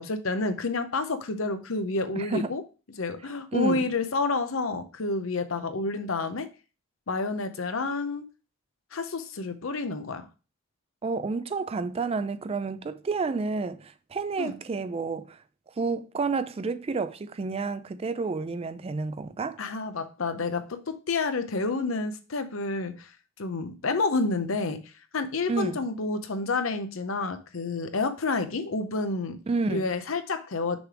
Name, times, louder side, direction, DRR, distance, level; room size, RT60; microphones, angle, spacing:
voice 1, 0.0-2.6 3.0-6.5 7.1-8.2 8.9-10.2 14.4-14.6 19.6-23.1 23.4-24.8 25.1-29.4 29.7-30.8, left 3 dB, 70° left, 0.8 m, -29 dB
voice 2, 2.2-2.5 3.5-3.9 11.0-15.4 15.8-19.6 25.5-25.8 29.5-29.9, right 4 dB, 30° right, 0.3 m, -30 dB
6.1 x 3.4 x 4.9 m
head